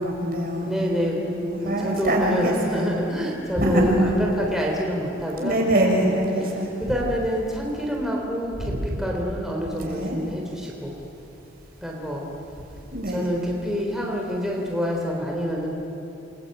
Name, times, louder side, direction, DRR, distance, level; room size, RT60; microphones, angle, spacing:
voice 1, 0.0-0.7 1.2-2.9 3.6-4.2 5.4-6.7 9.8-10.2 12.9-13.2, right 1 dB, 50° right, 0 dB, 6.2 m, -23 dB
voice 2, 0.6-1.2 1.6-5.6 6.0-6.1 6.4-10.9 11.8-12.2 13.1-15.7, equal, ahead, -2 dB, 3.6 m, -27 dB
29.0 x 22.0 x 9.1 m, 2.9 s
head